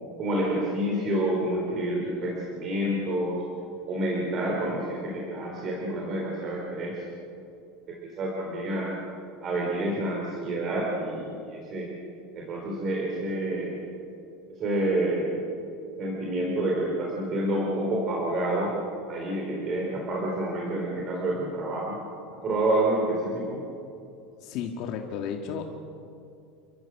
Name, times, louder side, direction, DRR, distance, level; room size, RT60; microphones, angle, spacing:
voice 1, 0.2-3.4 3.9-7.0 7.9-8.9 9.4-11.9 12.3-13.8 14.5-15.4 16.0-18.8 19.1-22.0 22.3-23.6, right 1 dB, 30° right, -2 dB, 4.2 m, -28 dB
voice 2, 24.4-25.6, left 7 dB, 45° left, 3 dB, 1.8 m, -33 dB
29.5 x 15.0 x 7.4 m, 2.6 s
supercardioid pair, 165°, 0 cm